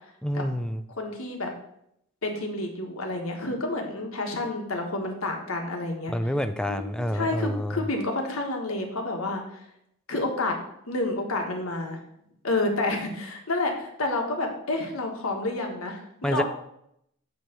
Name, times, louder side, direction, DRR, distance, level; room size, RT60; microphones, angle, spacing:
voice 1, 0.2-0.8 6.1-7.8 16.2-16.4, equal, 5° left, 9 dB, 0.4 m, -28 dB
voice 2, 1.0-1.5 2.2-6.1 6.7-9.6 10.1-10.5 10.9-12.0 12.4-16.4, left 2 dB, 70° left, 3 dB, 1.5 m, -29 dB
9.3 x 3.2 x 6.6 m, 0.76 s
head